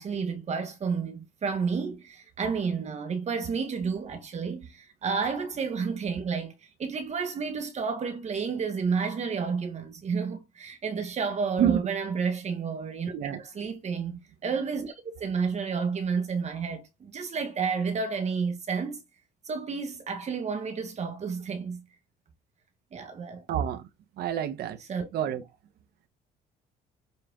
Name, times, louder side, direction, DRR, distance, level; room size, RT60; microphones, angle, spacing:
voice 1, 0.0-13.1 13.4-19.0 19.4-21.8 22.9-23.4 24.9-25.1, right 5 dB, 40° right, 1.5 m, -31 dB
voice 2, 23.5-23.9 24.2-24.8 25.1-25.4, right 10 dB, 70° right, 1.3 m, -27 dB
7.6 x 4.3 x 3.9 m
cardioid pair, 110°, 17 cm